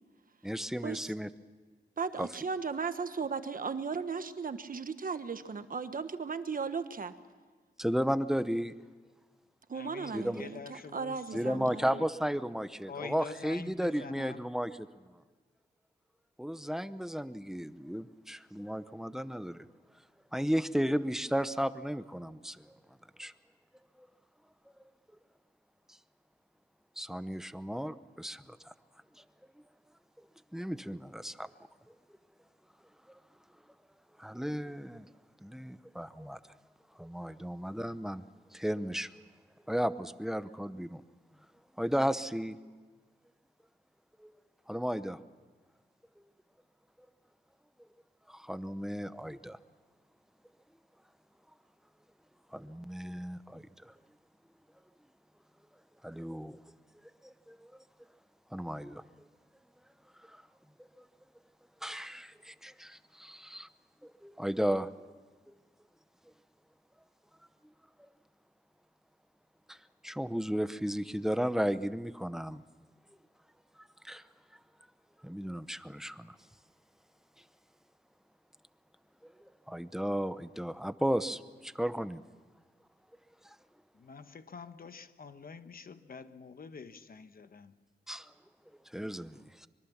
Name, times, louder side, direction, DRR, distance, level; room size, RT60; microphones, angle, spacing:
voice 1, 0.4-1.3 2.2-2.3 7.8-8.7 10.1-10.4 10.7-10.8 11.3-14.9 16.4-19.7 20.3-22.8 23.2-23.3 27.0-28.7 29.2-29.3 30.5-31.5 34.2-35.1 35.4-36.4 37.0-38.2 38.5-39.1 39.7-41.0 41.8-42.6 44.2-44.3 44.7-45.2 48.3-49.6 52.5-53.9 56.0-56.6 57.2-57.7 58.5-59.0 60.2-60.4 61.8-63.7 64.0-64.9 65.5-65.6 68.0-68.1 69.7-69.8 70.0-72.6 74.0-74.2 75.2-76.4 79.4-82.2 83.4-83.6 88.1-88.3 88.9-89.7, equal, ahead, 13 dB, 0.7 m, -34 dB
voice 2, 2.0-7.1 9.7-12.0, right 5 dB, 50° right, 10 dB, 1.3 m, -36 dB
voice 3, 9.7-12.0 12.9-14.4 84.0-87.7, left 5 dB, 55° left, 10 dB, 1.1 m, -46 dB
25.0 x 22.5 x 7.2 m, 1.4 s
wide cardioid pair, 115°, 18 cm